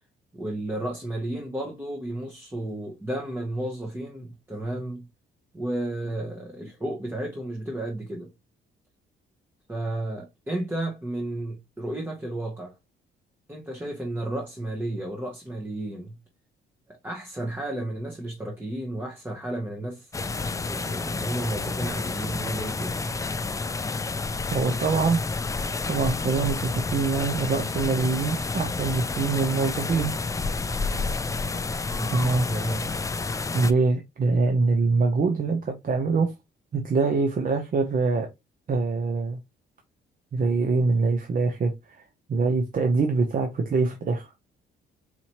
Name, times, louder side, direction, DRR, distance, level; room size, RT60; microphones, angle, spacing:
voice 1, 0.3-5.0 5.5-8.3 9.7-12.7 13.5-16.2 16.9-20.1 20.7-23.1 31.9-32.9, right 1 dB, 10° right, 1.0 m, -33 dB
sound 1, 20.1-33.7, left 3 dB, 15° left, 0.3 m, -30 dB
voice 2, 24.5-25.2 25.9-30.1 32.1-32.5 33.5-36.3 36.7-38.3 38.7-39.4 40.3-42.0 42.3-44.3, right 4 dB, 45° right, 0.8 m, -24 dB
4.3 x 2.8 x 2.9 m
cardioid pair, 90°, 20 cm